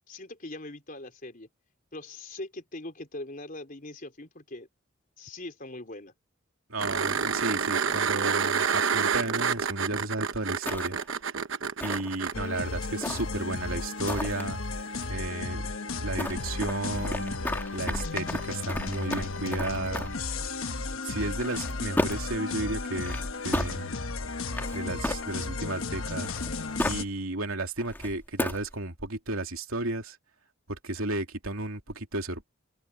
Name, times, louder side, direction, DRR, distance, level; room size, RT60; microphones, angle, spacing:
voice 1, 0.0-1.5 1.9-4.7 5.2-6.1, left 2 dB, 40° left, 4.0 m, -41 dB
voice 2, 6.7-11.4 11.8-14.6 14.9-15.7 16.0-17.4 17.7-20.1 21.0-23.2 23.4-23.9 24.7-26.6 26.8-30.2 30.7-32.5, right 2 dB, 85° right, 2.8 m, -33 dB
sound 1, 6.8-12.3 15.0-15.1, right 6 dB, 65° right, 1.0 m, -28 dB
sound 2, 10.7-11.2 11.8-12.4 13.0-13.5 14.1-14.4 16.2-20.3 21.3-22.4 22.9-23.7 24.5-25.6 26.2-27.1 27.8-28.7, left 1 dB, 10° left, 1.8 m, -34 dB
sound 3, 12.3-27.0, left 3 dB, 80° left, 1.1 m, -34 dB
open air
head